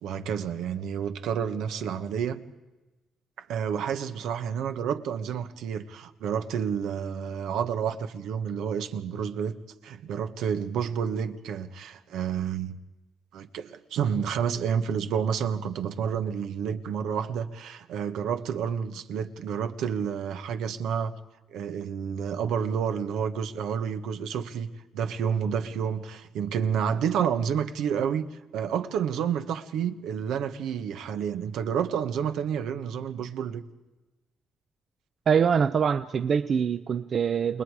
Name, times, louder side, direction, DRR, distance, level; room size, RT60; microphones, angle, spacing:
voice 1, 0.0-2.4 3.4-9.6 9.8-12.8 13.3-21.1 21.5-24.7 24.9-28.3 28.5-33.6, right 7 dB, 85° right, 1.3 m, -29 dB
voice 2, 35.3-37.6, right 7 dB, 50° right, 0.6 m, -24 dB
29.5 x 19.5 x 4.9 m
cardioid pair, 90°, 0 cm